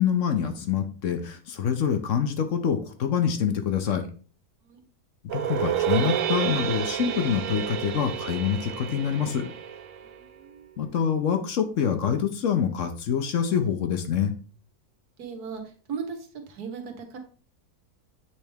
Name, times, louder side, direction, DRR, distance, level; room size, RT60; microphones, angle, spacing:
voice 1, 0.0-4.0 5.3-9.5 10.8-14.3, left 8 dB, 60° left, 7 dB, 1.0 m, -26 dB
sound 1, 5.3-10.5, right 10 dB, 70° right, 0.9 m, -30 dB
voice 2, 10.0-10.7 15.2-17.2, right 6 dB, 90° right, 5 dB, 1.6 m, -38 dB
8.2 x 3.4 x 3.4 m, 0.39 s
omnidirectional pair, 1.6 m